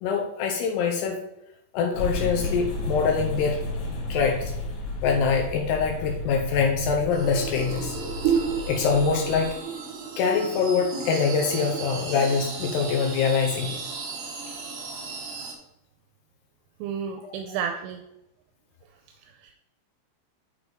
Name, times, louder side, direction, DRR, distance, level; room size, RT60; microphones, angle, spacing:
voice 1, 0.0-1.2 1.7-3.6 4.1-4.5 5.0-8.0 8.3-8.4 8.7-9.6 10.2-13.8, left 5 dB, 85° left, 2 dB, 2.4 m, -24 dB
sound 1, 1.9-9.5, left 1 dB, 65° left, 4.2 m, -33 dB
sound 2, 7.1-15.5, right 6 dB, 65° right, 2.0 m, -32 dB
voice 2, 16.8-18.0 19.2-19.5, right 7 dB, 80° right, 4 dB, 3.1 m, -32 dB
9.1 x 7.8 x 3.6 m, 0.86 s
omnidirectional pair, 5.8 m